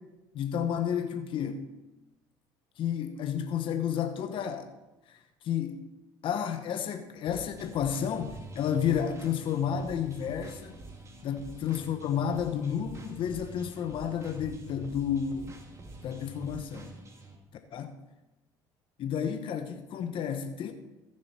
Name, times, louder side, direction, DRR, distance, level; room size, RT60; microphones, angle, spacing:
voice 1, 0.3-1.7 2.8-4.7 5.1-5.2 5.4-5.8 6.2-10.7 11.2-15.6 16.0-16.9 17.7-17.9 19.0-20.7, left 8 dB, 55° left, 8 dB, 0.9 m, -31 dB
sound 1, 7.3-17.4, right 2 dB, 30° right, 2.1 m, -47 dB
14.5 x 6.5 x 4.3 m, 1.0 s
supercardioid pair, 75°, 10 cm